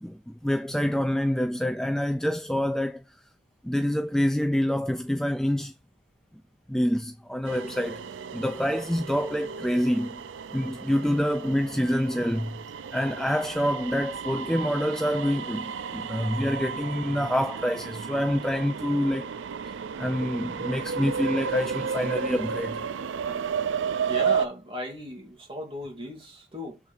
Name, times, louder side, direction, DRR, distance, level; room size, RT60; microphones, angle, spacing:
voice 1, 0.0-3.0 3.6-5.7 6.7-8.0 8.3-10.2 10.5-12.6 12.9-19.3 20.0-22.8 23.3-23.4, equal, 5° left, 0.3 m, -26 dB
sound 1, 7.5-24.5, right 6 dB, 80° right, 0.4 m, -33 dB
voice 2, 24.1-26.8, equal, 30° right, 1.9 m, -36 dB
7.2 x 3.4 x 4.4 m
head